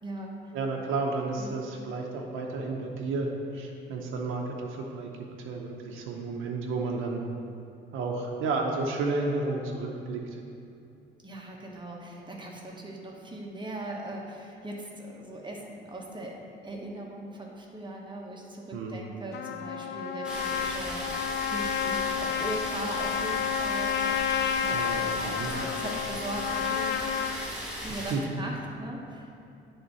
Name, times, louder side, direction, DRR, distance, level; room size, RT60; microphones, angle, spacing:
voice 1, 0.0-0.4 1.4-1.6 11.2-16.4 16.6-26.9 27.8-29.4, right 1 dB, 25° right, -1 dB, 1.2 m, -39 dB
voice 2, 0.5-5.1 5.4-7.2 7.9-10.2 18.7-19.0 24.7-25.5 27.9-28.2, right 3 dB, 85° right, 0 dB, 0.7 m, -32 dB
Trumpet, 19.3-27.4, left 8 dB, 60° left, 0.4 m, -30 dB
sound 1, 20.2-28.1, equal, 5° right, 1.6 m, -37 dB
9.8 x 3.6 x 4.0 m, 2.6 s
cardioid pair, 90°, 20 cm